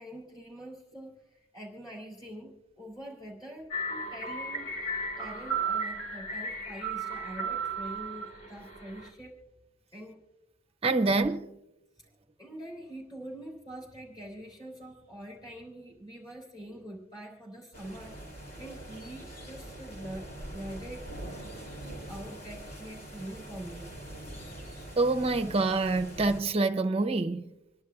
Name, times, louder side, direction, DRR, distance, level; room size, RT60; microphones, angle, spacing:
voice 1, 0.0-9.4 9.9-10.2 12.4-21.1 22.1-24.0, right 1 dB, 20° left, 3.4 m, -45 dB
sound 1, 3.7-9.1, right 3 dB, 70° left, 3.7 m, -34 dB
voice 2, 10.8-11.5 25.0-27.4, right 3 dB, 30° right, 0.6 m, -26 dB
sound 2, 17.7-26.4, right 1 dB, 45° left, 2.9 m, -43 dB
27.5 x 11.0 x 2.4 m
head